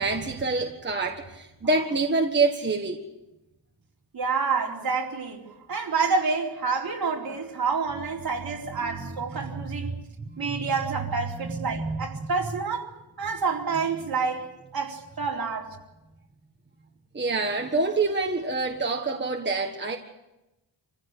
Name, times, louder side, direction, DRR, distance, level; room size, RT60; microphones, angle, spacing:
voice 1, 0.0-3.0 8.8-9.5 10.3-10.5 11.4-12.3 17.1-20.0, right 3 dB, 25° right, 1.6 m, -27 dB
voice 2, 4.1-5.4 5.7-9.9 10.4-12.9 13.2-14.5 14.7-15.8, right 5 dB, 55° right, 4.3 m, -28 dB
27.0 x 15.5 x 8.4 m
wide cardioid pair, 140°, 43 cm